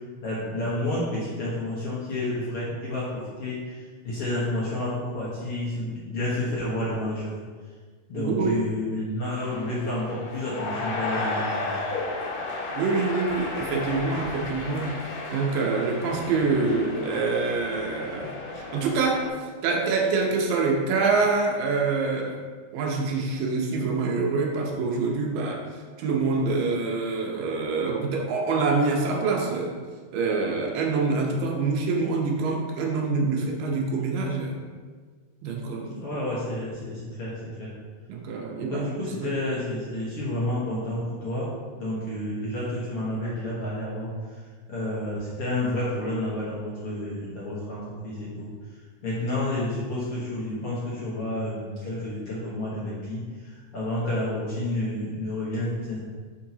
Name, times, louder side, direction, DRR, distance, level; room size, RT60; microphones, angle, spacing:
voice 1, 0.2-7.3 8.1-11.8 36.0-37.7 38.6-41.5 41.8-44.1 44.7-48.5 49.0-56.0, left 1 dB, 55° left, -8 dB, 1.8 m, -30 dB
voice 2, 8.1-8.6 12.7-14.9 15.3-19.2 19.6-22.4 22.7-25.7 26.0-29.8 30.1-34.6 35.4-36.0 38.1-38.9 39.2-39.4, right 4 dB, 80° right, 0 dB, 2.5 m, -26 dB
sound 1, 9.3-19.3, left 2 dB, 70° left, 2.8 m, -33 dB
9.8 x 4.7 x 2.9 m, 1.5 s
omnidirectional pair, 4.0 m